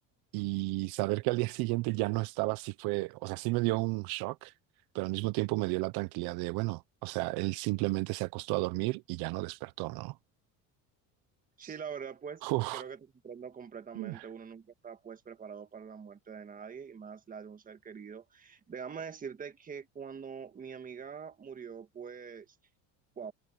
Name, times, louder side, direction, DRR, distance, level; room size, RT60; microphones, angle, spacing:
voice 1, 0.3-4.5 4.9-10.1 11.6-11.7 12.4-12.8 14.0-14.2, right 23 dB, 70° right, 0.8 m, -32 dB
voice 2, 11.6-12.4 12.7-22.6 23.2-23.3, right 6 dB, 20° right, 1.6 m, -44 dB
cardioid pair, 150°, 39 cm